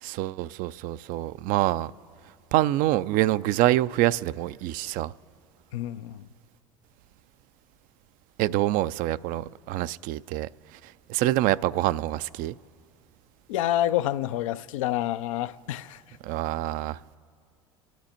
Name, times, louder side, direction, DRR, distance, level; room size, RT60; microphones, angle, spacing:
voice 1, 0.0-1.9 2.5-5.1 8.4-12.5 16.2-17.0, right 15 dB, 55° right, 0.4 m, -26 dB
voice 2, 5.7-6.3 13.5-16.0, left 13 dB, 80° left, 0.5 m, -28 dB
28.0 x 10.5 x 4.4 m
hypercardioid pair, 80°, 17 cm